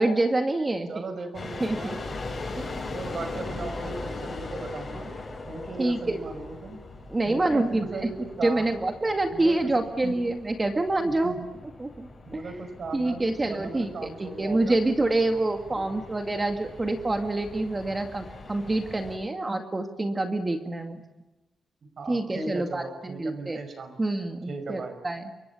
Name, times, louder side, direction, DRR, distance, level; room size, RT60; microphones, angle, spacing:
voice 1, 0.0-1.0 1.6-2.0 2.6-2.7 5.8-6.2 7.1-8.1 8.4-11.4 11.8-12.1 12.9-13.9 14.2-21.0 22.1-23.6 24.0-25.2, right 2 dB, 20° right, 5 dB, 2.1 m, -26 dB
voice 2, 0.9-2.1 2.9-5.1 5.5-6.8 7.3-8.8 9.3-9.8 10.0-10.2 11.0-11.5 12.3-14.8 15.7-16.0 21.8-24.0 24.5-25.0, right 3 dB, 45° right, 9 dB, 5.4 m, -37 dB
sound 1, 1.3-19.2, left 3 dB, 25° left, 8.0 m, -40 dB
28.5 x 25.0 x 7.1 m, 1.1 s
wide cardioid pair, 170°, 0 cm